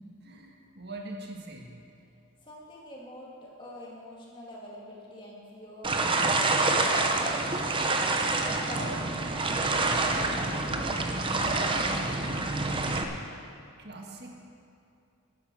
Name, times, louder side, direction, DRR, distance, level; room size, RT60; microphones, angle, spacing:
voice 1, 0.2-1.7 13.8-14.5, right 2 dB, 50° right, 1 dB, 1.6 m, -42 dB
voice 2, 2.4-7.4 8.0-10.5 11.0-11.6, left 1 dB, 25° left, -4 dB, 2.3 m, -45 dB
sound 1, 5.8-13.0, right 3 dB, 25° right, 0.7 m, -27 dB
11.5 x 10.0 x 6.2 m, 2.5 s
head